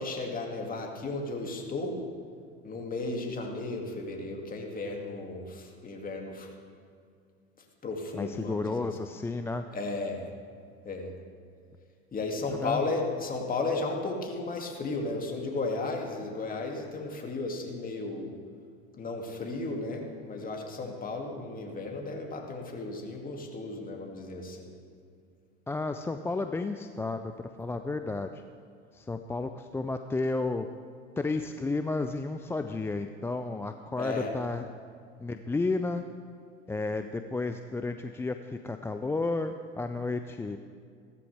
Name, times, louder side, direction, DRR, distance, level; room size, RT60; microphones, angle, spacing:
voice 1, 0.0-2.1 2.6-6.5 7.8-8.9 9.7-10.3 10.8-11.2 12.1-18.3 19.0-24.7 34.0-34.3, left 3 dB, 25° left, 1 dB, 2.4 m, -34 dB
voice 2, 8.1-9.7 12.6-12.9 25.7-28.4 28.9-30.7 31.2-34.6 35.2-36.0 36.7-40.6, left 3 dB, 10° left, 8 dB, 0.4 m, -32 dB
16.5 x 13.5 x 3.5 m, 2.2 s
hypercardioid pair, 80°, 32 cm